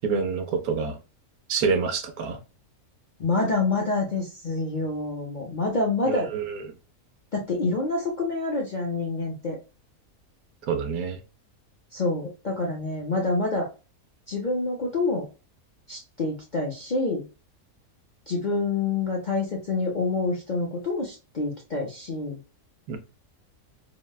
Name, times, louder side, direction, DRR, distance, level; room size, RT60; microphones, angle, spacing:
voice 1, 0.0-1.0 1.5-2.4 6.1-6.7 10.7-11.2 22.9-23.0, right 5 dB, 80° right, 1.1 m, -27 dB
voice 2, 3.2-6.3 7.3-9.6 11.9-13.6 14.3-15.3 15.9-17.2 18.3-22.4, left 3 dB, 50° left, 0.5 m, -27 dB
3.9 x 2.1 x 2.3 m
omnidirectional pair, 1.5 m